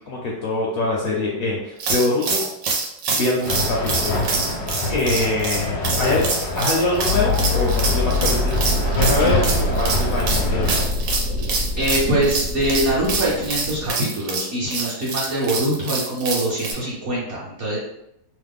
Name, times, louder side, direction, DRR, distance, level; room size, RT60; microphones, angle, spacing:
voice 1, 0.1-2.5 3.1-4.6 4.9-8.5 8.9-10.7, left 2 dB, 70° left, -3 dB, 0.9 m, -24 dB
sound 1, 1.8-16.7, right 4 dB, 85° right, 1.3 m, -26 dB
sound 2, 3.4-10.9, left 2 dB, 90° left, 1.3 m, -26 dB
sound 3, 7.0-13.9, left 2 dB, 70° right, 1.3 m, -24 dB
voice 2, 11.8-17.8, right 1 dB, 50° right, -7 dB, 1.0 m, -23 dB
3.1 x 2.1 x 3.4 m, 0.81 s
omnidirectional pair, 1.9 m